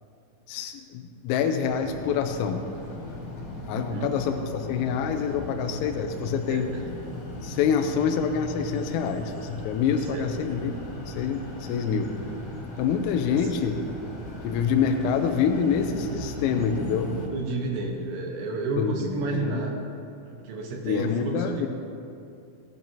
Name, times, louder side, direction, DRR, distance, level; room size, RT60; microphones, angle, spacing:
voice 1, 0.5-2.6 3.7-6.7 7.4-10.8 11.1-12.1 12.8-13.8 14.4-17.1 18.8-19.6 20.8-21.7, left 7 dB, 85° left, 5 dB, 3.3 m, -26 dB
sound 1, 1.6-17.3, left 1 dB, 40° left, 2.5 m, -38 dB
voice 2, 3.7-4.2 6.5-6.8 10.1-10.3 13.3-13.4 17.3-19.8 20.3-21.7, right 3 dB, 70° right, 0 dB, 3.0 m, -31 dB
17.5 x 10.5 x 2.8 m, 2.6 s
omnidirectional pair, 5.9 m